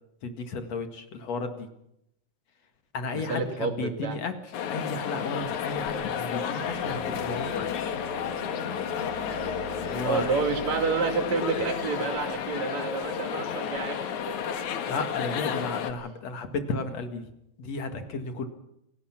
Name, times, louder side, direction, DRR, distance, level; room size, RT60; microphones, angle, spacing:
voice 1, 0.2-1.7 2.9-4.3 4.7-7.7 9.9-10.3 14.9-17.3 17.6-18.5, left 3 dB, 65° left, 7 dB, 3.1 m, -33 dB
voice 2, 3.1-4.2 10.0-14.5, right 5 dB, 70° right, 6 dB, 3.6 m, -29 dB
sound 1, 4.5-15.9, left 8 dB, 85° left, 3.0 m, -32 dB
sound 2, 6.6-13.2, right 4 dB, 85° right, 3.3 m, -45 dB
28.0 x 18.0 x 6.0 m, 0.80 s
omnidirectional pair, 3.3 m